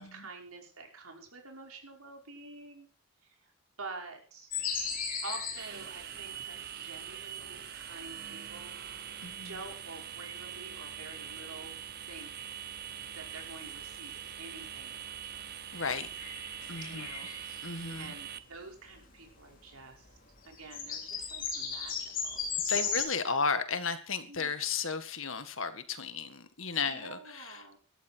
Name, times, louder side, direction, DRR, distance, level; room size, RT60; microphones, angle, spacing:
voice 1, 0.0-2.9 3.2-3.5 3.8-4.5 5.2-8.9 9.4-11.8 12.1-12.5 13.1-15.6 16.8-17.3 18.0-20.1 20.4-22.9 24.3-24.5 26.8-27.8, right 3 dB, 90° right, 1 dB, 5.4 m, -48 dB
sound 1, 4.5-19.4 19.8-19.9 20.1-23.1, left 6 dB, 40° left, 3.9 m, -38 dB
sound 2, 5.6-18.4, right 9 dB, 50° right, 0.9 m, -43 dB
voice 2, 9.2-9.5 15.7-16.1 16.7-17.1 17.6-18.1 22.7-27.6, left 5 dB, 65° left, 10 dB, 1.8 m, -34 dB
18.5 x 13.0 x 4.6 m, 0.40 s
head